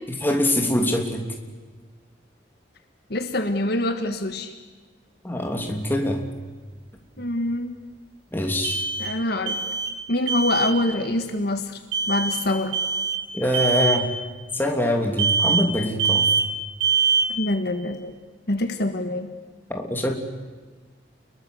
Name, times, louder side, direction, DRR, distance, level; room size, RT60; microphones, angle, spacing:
voice 1, 0.1-1.3 5.2-6.2 8.3-8.9 13.3-14.1 14.5-16.2 19.7-20.1, left 1 dB, 10° left, 2 dB, 3.1 m, -24 dB
voice 2, 3.1-4.5 7.2-7.7 9.0-9.6 10.1-11.8 12.1-12.8 17.3-18.1 18.5-19.3, left 1 dB, 60° left, 7 dB, 1.6 m, -25 dB
sound 1, 5.4-5.5 8.6-10.0 10.3-10.8 11.9-12.4 12.7-13.2 13.5-14.0 15.2-15.7 16.0-16.5 16.8-17.4, right 5 dB, 75° right, 4.8 m, -23 dB
29.5 x 22.0 x 8.1 m, 1.4 s
head